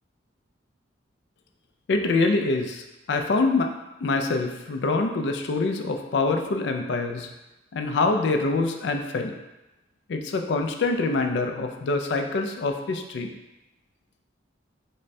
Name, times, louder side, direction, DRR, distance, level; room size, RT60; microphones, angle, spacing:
voice 1, 1.9-3.7 4.0-7.3 7.7-9.3 10.1-13.3, left 3 dB, 65° left, 5 dB, 0.4 m, -25 dB
5.0 x 2.2 x 2.7 m, 1.0 s
head